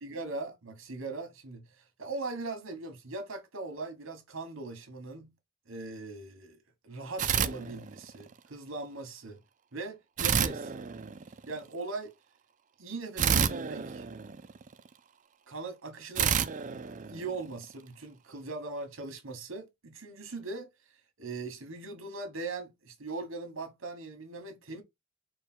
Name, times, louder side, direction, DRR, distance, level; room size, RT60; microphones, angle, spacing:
voice 1, 0.0-1.6 2.0-5.3 5.7-9.4 9.7-10.7 11.5-12.1 12.8-14.0 15.5-16.8 17.1-20.7 21.2-24.8, right 3 dB, 80° right, 1.3 m, -40 dB
sound 1, 7.2-8.3 10.2-11.6 13.2-14.9 16.2-17.7, right 7 dB, 40° right, 0.4 m, -30 dB
4.6 x 2.3 x 4.3 m
head